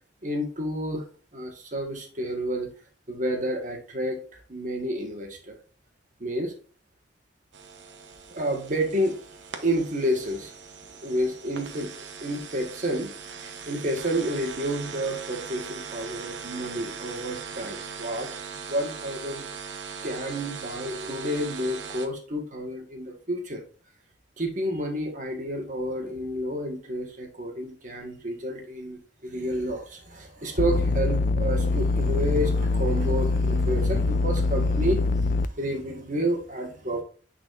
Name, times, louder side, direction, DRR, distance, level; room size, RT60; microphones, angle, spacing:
voice 1, 0.2-1.1 1.3-2.7 3.1-5.5 6.2-6.5 8.3-9.2 9.6-10.5 11.0-11.9 12.2-13.1 13.4-18.3 18.7-19.4 20.0-23.6 24.4-37.0, equal, 45° right, 3 dB, 1.5 m, -30 dB
sound 1, 7.5-22.1, right 6 dB, 75° right, 0.9 m, -40 dB
sound 2, 30.6-35.5, left 3 dB, 50° left, 0.3 m, -24 dB
9.6 x 4.1 x 2.5 m, 0.40 s
head